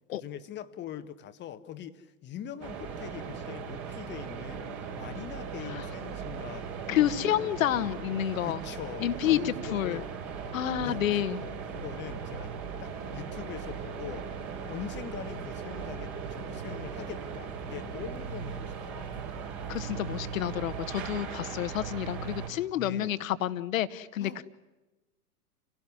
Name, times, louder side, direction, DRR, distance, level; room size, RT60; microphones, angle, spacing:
voice 1, 0.1-6.7 7.0-7.5 8.4-10.1 10.8-12.5 12.8-14.3 14.7-19.3 22.7-23.1 24.2-24.4, left 10 dB, 25° left, 10 dB, 1.5 m, -42 dB
sound 1, 2.6-22.5, right 6 dB, 35° right, 5.4 m, -38 dB
voice 2, 6.9-8.6 9.0-10.0 10.5-11.4 19.7-24.4, left 11 dB, 55° left, 13 dB, 1.6 m, -29 dB
29.5 x 17.5 x 10.0 m, 1.1 s
figure-of-eight pair, 105°, 46 cm